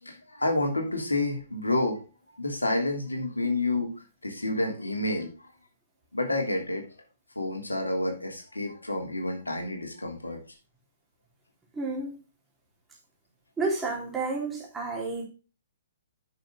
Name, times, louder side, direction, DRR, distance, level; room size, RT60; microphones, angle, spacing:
voice 1, 0.0-2.0 2.4-3.9 4.2-5.3 6.1-6.8 7.3-10.4, left 2 dB, 80° left, 3 dB, 3.1 m, -29 dB
voice 2, 11.7-12.2 13.6-15.3, right 3 dB, 10° right, -2 dB, 3.5 m, -30 dB
10.0 x 6.6 x 3.7 m, 0.33 s
figure-of-eight pair, 125°, 0 cm